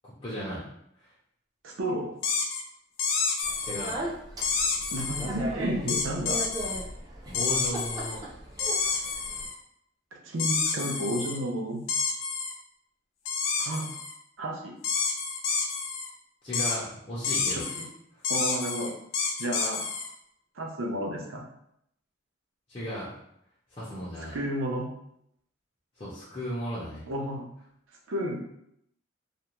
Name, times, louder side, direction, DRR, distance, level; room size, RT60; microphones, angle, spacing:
voice 1, 0.0-0.6 1.0-1.1 3.6-4.0 7.3-8.2 8.7-9.0 16.4-17.7 22.7-23.1 23.7-24.4 26.0-27.0, equal, 25° left, -9 dB, 0.5 m, -36 dB
voice 2, 1.6-2.1 4.9-6.4 10.1-11.8 13.6-13.9 14.4-14.7 17.5-17.9 18.3-18.9 19.4-19.9 20.6-21.4 24.3-24.9 27.1-27.4 28.1-28.4, right 1 dB, 85° right, 1 dB, 0.5 m, -31 dB
sound 1, 2.2-2.6 3.0-4.0 4.4-5.3 5.9-6.8 7.3-8.2 8.6-9.5 10.4-11.4 11.9-12.5 13.3-14.1 14.8-16.1 16.5-16.8 17.2-17.9 18.2-20.1, left 5 dB, 80° left, 0.4 m, -29 dB
Speech, 3.4-9.5, right 1 dB, 20° right, 0.5 m, -37 dB
2.4 x 2.1 x 2.9 m, 0.75 s
head